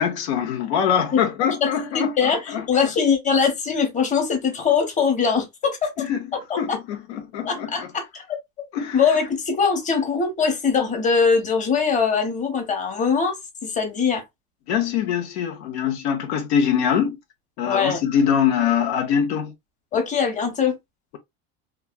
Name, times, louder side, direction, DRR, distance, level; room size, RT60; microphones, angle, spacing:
voice 1, 0.0-2.6 6.0-6.2 6.6-7.9 8.7-9.0 14.7-17.2 17.6-19.5, left 8 dB, 90° left, 0.8 m, -23 dB
voice 2, 1.1-6.0 6.3-6.8 7.4-8.2 8.9-14.2 17.6-18.0 19.9-20.8, left 5 dB, 25° left, 0.9 m, -22 dB
3.1 x 2.3 x 2.2 m
supercardioid pair, 110°, 32 cm